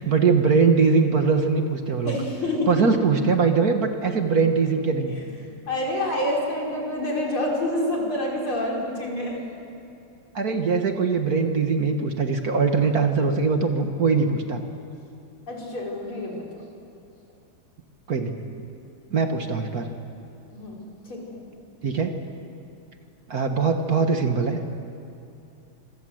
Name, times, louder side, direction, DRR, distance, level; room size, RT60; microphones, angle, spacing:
voice 1, 0.0-2.2 2.7-5.1 10.4-14.6 18.1-18.3 19.1-19.9 21.8-22.1 23.3-24.6, right 5 dB, 50° right, 5 dB, 1.8 m, -21 dB
voice 2, 2.0-2.9 5.2-5.3 5.7-9.4 15.5-16.4 20.5-20.8 21.1-21.4, left 1 dB, 75° left, -2 dB, 5.5 m, -27 dB
26.0 x 22.5 x 7.8 m, 2.7 s
omnidirectional pair, 2.3 m